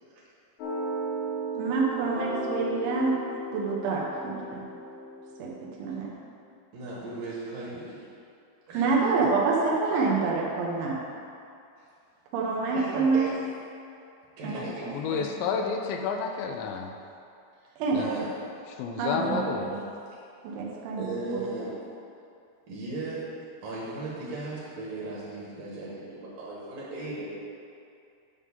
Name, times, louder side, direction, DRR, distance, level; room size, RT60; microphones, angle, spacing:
sound 1, 0.6-6.1, right 1 dB, 65° left, 2.5 m, -35 dB
voice 1, 1.6-3.2 3.5-4.7 5.4-5.5 5.8-6.1 8.7-11.0 12.3-13.3 14.4-14.6 15.2-15.3 17.8-18.0 19.0-19.7 20.4-21.1, right 4 dB, 90° right, -3 dB, 3.5 m, -27 dB
voice 2, 6.7-8.0 8.7-9.3 11.8-11.9 12.7-13.4 14.4-15.2 17.6-18.3 19.1-19.7 21.0-21.7 22.7-23.3 23.6-27.3, right 2 dB, 55° right, -7 dB, 2.8 m, -36 dB
voice 3, 14.9-16.9 17.9-18.1 18.8-19.6, left 5 dB, 80° left, 3 dB, 2.8 m, -30 dB
11.0 x 3.7 x 7.1 m, 2.5 s
omnidirectional pair, 5.4 m